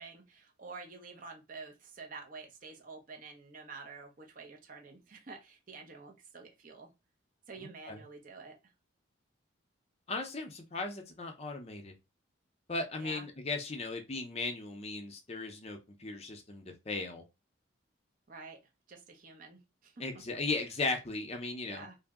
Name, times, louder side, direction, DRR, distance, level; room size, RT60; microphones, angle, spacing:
voice 1, 0.0-6.9 7.5-8.7 13.0-13.2 18.3-18.6 18.9-20.0 21.6-22.0, right 4 dB, 40° right, 2 dB, 0.6 m, -49 dB
voice 2, 7.6-8.0 10.1-11.9 12.7-17.2 20.0-21.8, left 3 dB, 30° left, 3 dB, 0.5 m, -37 dB
2.6 x 2.0 x 3.5 m, 0.25 s
head